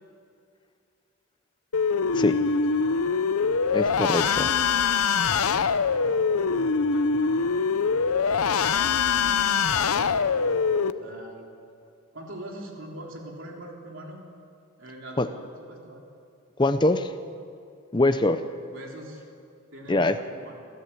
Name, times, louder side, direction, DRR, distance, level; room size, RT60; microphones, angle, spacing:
sound 1, 1.7-10.9, left 5 dB, 85° left, 0.7 m, -23 dB
voice 1, 2.7-3.2 5.5-6.4 6.8-7.3 7.8-7.9 8.8-11.5 12.1-14.2 14.8-15.3 15.7-16.0 18.6-19.2 19.7-20.6, right 1 dB, 60° right, -1 dB, 3.4 m, -43 dB
voice 2, 3.7-4.5 15.2-15.3 16.6-17.1 17.9-18.4 19.9-20.2, left 2 dB, 20° left, 9 dB, 0.6 m, -23 dB
26.5 x 13.5 x 8.5 m, 2.3 s
head